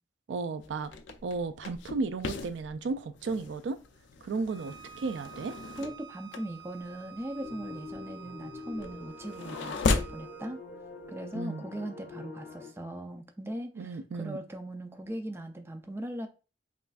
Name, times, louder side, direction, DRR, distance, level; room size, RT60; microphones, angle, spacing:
voice 1, 0.3-0.9 1.2-3.8 4.2-5.6 11.3-11.6 13.8-14.4, right 4 dB, 80° right, 0.4 m, -34 dB
sound 1, 0.6-10.3, left 3 dB, 80° left, 0.4 m, -36 dB
Bowed string instrument, 4.5-10.5, right 10 dB, 15° left, 0.9 m, -50 dB
voice 2, 5.8-10.6 11.1-16.3, right 1 dB, 15° right, 0.4 m, -39 dB
sound 2, 7.4-12.7, left 3 dB, 55° left, 1.8 m, -45 dB
5.4 x 2.5 x 2.3 m
head